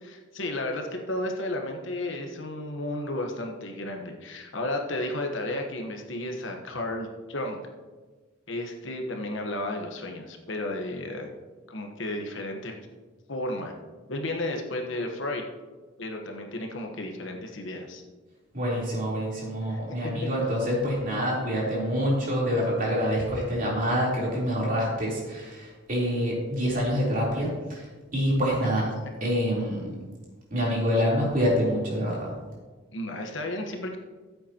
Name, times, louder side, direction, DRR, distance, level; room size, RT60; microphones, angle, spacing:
voice 1, 0.0-7.6 8.5-11.3 11.7-12.7 13.3-13.7 14.1-15.4 16.0-18.0 19.6-20.5 32.9-34.0, left 1 dB, 65° left, 3 dB, 1.1 m, -33 dB
voice 2, 18.5-27.9 28.1-28.9 29.2-30.0 30.5-32.3, equal, 40° right, -5 dB, 3.5 m, -26 dB
14.5 x 7.9 x 2.9 m, 1.3 s
head